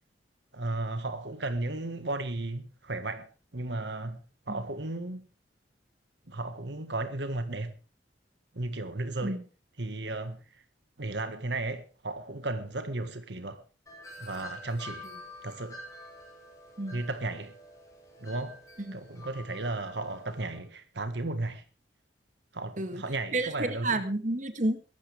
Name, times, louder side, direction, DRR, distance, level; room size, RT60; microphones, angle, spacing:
voice 1, 0.5-4.2 4.5-5.3 6.3-7.7 8.5-9.4 9.8-10.6 11.0-13.6 14.2-15.1 15.4-15.8 16.9-17.5 18.2-18.6 18.9-21.6 22.5-24.0, right 2 dB, 75° right, 1.6 m, -34 dB
Wind chime, 13.9-20.6, left 1 dB, 20° left, 7.8 m, -47 dB
voice 2, 23.3-24.8, right 2 dB, 45° right, 1.7 m, -30 dB
22.0 x 12.5 x 3.5 m
head